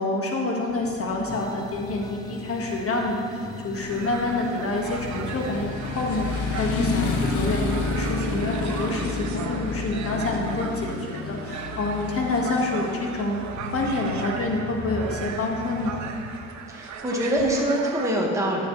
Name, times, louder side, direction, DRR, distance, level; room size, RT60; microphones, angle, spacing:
voice 1, 0.0-13.4 13.7-16.0, left 2 dB, 50° left, 0 dB, 1.6 m, -27 dB
Motorcycle, 0.7-16.4, left 4 dB, 85° left, 0.9 m, -32 dB
sound 1, 1.3-10.1, left 3 dB, 15° left, 0.6 m, -45 dB
sound 2, 3.8-18.1, right 6 dB, 65° right, 0.7 m, -38 dB
voice 2, 16.7-18.7, right 1 dB, 10° right, -3 dB, 1.6 m, -24 dB
11.0 x 7.4 x 3.2 m, 2.3 s
cardioid pair, 90°, 30 cm